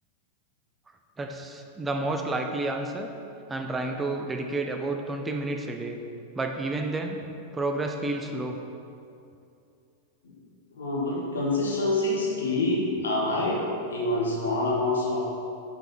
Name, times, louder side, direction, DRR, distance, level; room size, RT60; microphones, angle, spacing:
voice 1, 1.2-3.1 3.5-6.0 6.3-7.2 7.5-8.6, right 2 dB, 15° right, 3 dB, 0.5 m, -30 dB
voice 2, 10.7-13.6 13.9-15.3, left 2 dB, 70° left, -3 dB, 1.3 m, -26 dB
6.3 x 4.7 x 4.2 m, 2.6 s
figure-of-eight pair, 90°, 0 cm